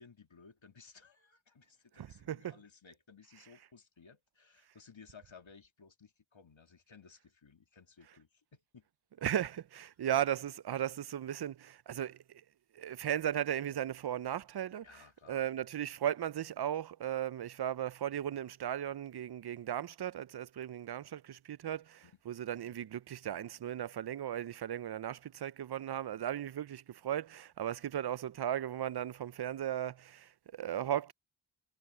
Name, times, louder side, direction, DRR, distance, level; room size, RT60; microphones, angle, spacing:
voice 1, 0.0-8.9 9.4-9.5 14.8-15.4 22.0-22.2, left 5 dB, 70° left, 1.9 m, -58 dB
voice 2, 2.0-2.5 9.2-12.2 12.7-14.8 15.3-31.1, right 10 dB, 55° right, 0.5 m, -36 dB
wide cardioid pair, 40°, 48 cm